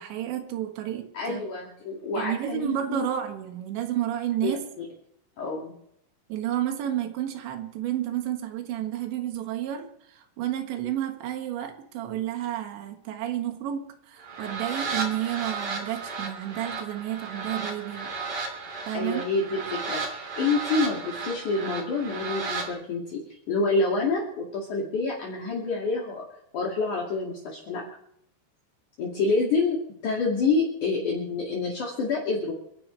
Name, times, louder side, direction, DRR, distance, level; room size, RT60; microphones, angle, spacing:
voice 1, 0.0-1.5 2.2-4.6 6.3-18.1 18.9-19.2, right 11 dB, 80° right, 5 dB, 3.8 m, -31 dB
voice 2, 1.1-3.1 4.4-4.5 4.8-4.9 5.4-5.7 18.9-26.2 26.5-27.8 29.0-32.5, left 3 dB, 50° left, -3 dB, 3.5 m, -27 dB
sound 1, 14.2-22.7, right 4 dB, 45° right, 4.2 m, -34 dB
30.0 x 12.0 x 3.3 m, 0.75 s
omnidirectional pair, 5.1 m